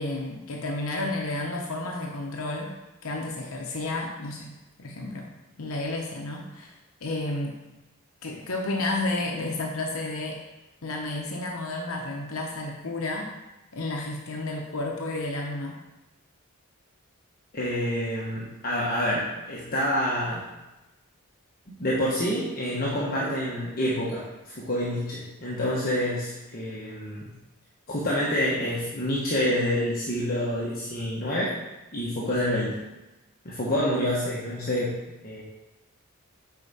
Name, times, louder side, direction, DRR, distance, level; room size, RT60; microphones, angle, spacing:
voice 1, 0.0-4.5 4.8-5.3 5.6-7.6 8.2-10.4 10.8-13.3 13.7-15.8, left 2 dB, 70° left, 1 dB, 0.9 m, -31 dB
voice 2, 17.5-20.5 21.8-27.3 27.9-31.5 31.9-32.8 33.4-35.0 35.2-35.4, left 1 dB, 40° left, -6 dB, 1.2 m, -27 dB
8.6 x 4.7 x 4.2 m, 1.0 s
head